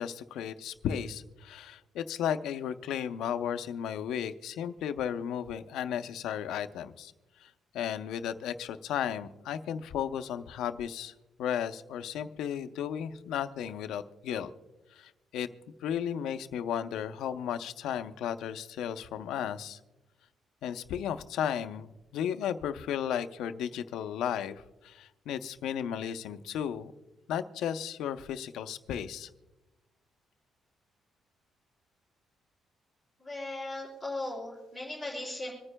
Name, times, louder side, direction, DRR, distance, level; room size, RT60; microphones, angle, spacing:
voice 1, 0.0-7.1 7.4-11.1 11.4-14.5 14.9-15.5 15.8-19.8 20.6-26.9 27.3-29.3, left 9 dB, 90° left, 9 dB, 0.6 m, -34 dB
voice 2, 33.2-35.5, left 2 dB, 10° right, -9 dB, 3.9 m, -37 dB
26.0 x 9.7 x 2.2 m, 1.1 s
cardioid pair, 175°, 0 cm